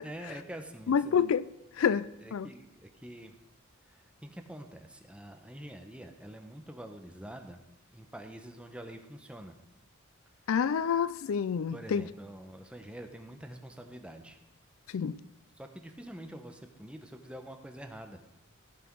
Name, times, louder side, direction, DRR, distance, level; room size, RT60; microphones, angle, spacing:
voice 1, 0.0-1.2 1.8-3.3 3.9-7.6 7.9-9.5 11.7-14.4 15.6-18.2, right 1 dB, 5° right, 0.9 m, -46 dB
voice 2, 0.9-1.4 1.8-2.5 10.5-12.0 14.9-15.2, left 7 dB, 75° left, 0.4 m, -28 dB
15.0 x 6.2 x 4.6 m
head